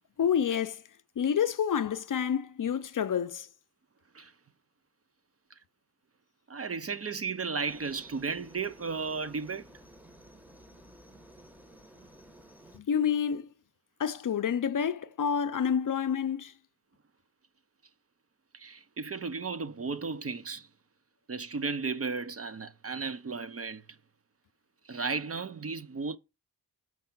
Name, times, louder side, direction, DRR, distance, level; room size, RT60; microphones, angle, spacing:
voice 1, 0.2-0.8 1.2-3.5 12.7-13.5 14.0-16.5, left 8 dB, 50° left, 0.6 m, -28 dB
voice 2, 6.5-9.7 18.5-20.7 21.3-23.8 24.9-26.2, right 4 dB, 35° right, 0.5 m, -34 dB
Aircraft, 7.7-12.8, right 1 dB, 5° right, 1.0 m, -54 dB
6.6 x 4.7 x 5.9 m
wide cardioid pair, 140°, 41 cm